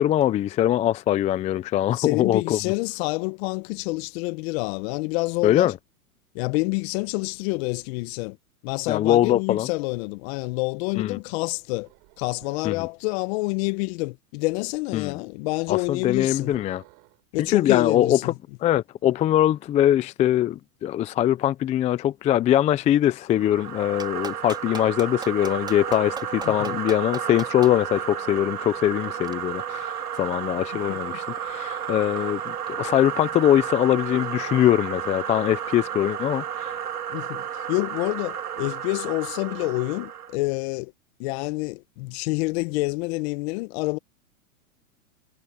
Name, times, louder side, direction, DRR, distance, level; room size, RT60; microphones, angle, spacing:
voice 1, 0.0-2.6 5.4-5.7 8.9-9.7 11.0-11.2 12.6-12.9 14.9-15.2 15.7-16.8 17.5-18.3 18.6-36.7, left 12 dB, 15° left, 0.5 m, -22 dB
voice 2, 1.9-5.7 6.3-8.4 8.6-11.9 12.2-16.5 17.3-18.4 26.4-26.7 30.9-31.0 37.1-40.9 41.2-44.0, left 26 dB, 45° left, 1.1 m, -28 dB
sound 1, 11.8-12.9 15.5-17.2, right 37 dB, 45° right, 5.8 m, -52 dB
sound 2, 23.3-40.4, right 9 dB, 90° right, 2.5 m, -32 dB
Clapping, 24.0-27.7 29.2-29.3, right 3 dB, 10° right, 3.7 m, -37 dB
hypercardioid pair, 125°, 44 cm